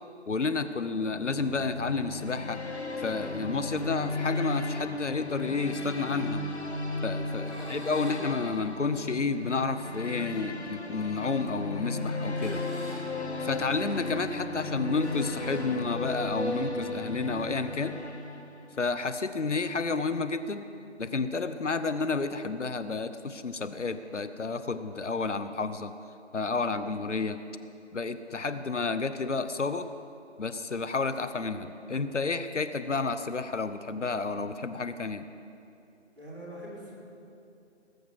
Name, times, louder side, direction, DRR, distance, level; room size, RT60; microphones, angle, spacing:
voice 1, 0.3-2.6 3.0-6.4 7.0-12.6 13.4-18.0 18.8-20.6 21.0-25.9 26.3-27.4 27.9-29.9 30.4-35.3, left 4 dB, 80° left, 11 dB, 0.9 m, -31 dB
sound 1, 1.1-18.8, left 2 dB, 65° left, 1.7 m, -35 dB
sound 2, 7.4-9.1 9.9-10.1 10.9-11.4 12.2-16.3, right 1 dB, 5° left, 3.1 m, -48 dB
voice 2, 7.4-7.9 13.8-14.0 36.2-36.9, right 1 dB, 15° right, -10 dB, 3.5 m, -43 dB
19.5 x 8.0 x 6.1 m, 2.6 s
figure-of-eight pair, 165°, 35 cm